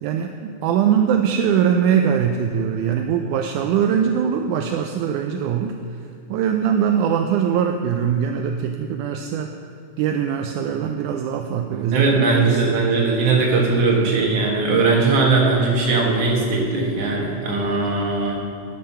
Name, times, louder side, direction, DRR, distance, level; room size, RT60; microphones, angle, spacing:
voice 1, 0.0-5.7 6.3-9.5 10.0-12.8, right 8 dB, 80° right, 4 dB, 1.9 m, -21 dB
voice 2, 11.9-18.4, right 3 dB, 55° right, -2 dB, 2.4 m, -19 dB
11.5 x 7.6 x 5.6 m, 2.3 s
omnidirectional pair, 3.7 m